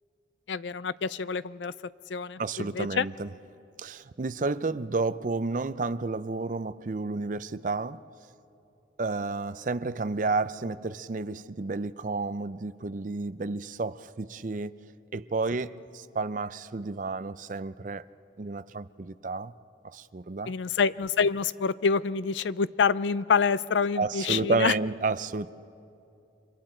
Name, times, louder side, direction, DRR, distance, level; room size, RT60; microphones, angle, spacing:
voice 1, 0.5-1.7 2.1-3.1 20.5-24.7, left 5 dB, 90° left, 0.5 m, -27 dB
voice 2, 2.4-3.3 3.8-8.0 9.0-14.8 15.1-18.1 18.4-19.5 19.9-20.5 24.0-25.5, right 3 dB, 45° right, 0.5 m, -31 dB
30.0 x 25.5 x 4.4 m
head